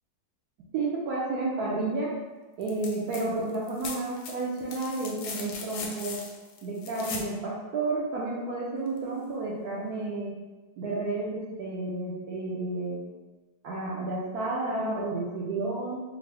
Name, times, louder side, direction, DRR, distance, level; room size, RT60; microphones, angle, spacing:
voice 1, 0.7-2.1 2.6-6.2 6.6-10.3 10.8-13.0 13.6-16.0, right 2 dB, 75° right, -5 dB, 0.9 m, -31 dB
sound 1, 2.6-3.2 3.5-7.3 9.0-9.1, left 4 dB, 75° left, 1.0 m, -39 dB
3.7 x 2.1 x 3.3 m, 1.2 s
omnidirectional pair, 2.1 m